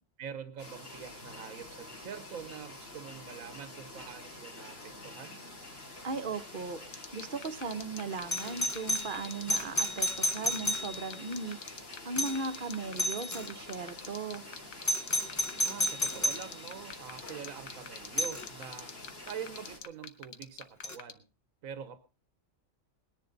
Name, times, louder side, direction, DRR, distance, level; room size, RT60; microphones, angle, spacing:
voice 1, 0.2-5.4 15.6-18.9 19.2-21.3 21.6-22.0, right 8 dB, 85° right, 11 dB, 1.3 m, -45 dB
sound 1, 0.6-19.8, left 2 dB, 50° left, 2.8 m, -47 dB
voice 2, 6.0-6.8 7.1-11.8 12.0-14.4, right 4 dB, 45° right, 10 dB, 1.0 m, -37 dB
sound 2, 6.9-21.1, left 7 dB, 85° left, 1.4 m, -43 dB
Doorbell, 8.3-11.3 12.2-12.5 13.0-13.5 14.8-16.5 18.2-18.4 20.8-21.0, equal, 20° left, 0.5 m, -32 dB
20.0 x 10.5 x 3.9 m, 0.32 s
omnidirectional pair, 1.4 m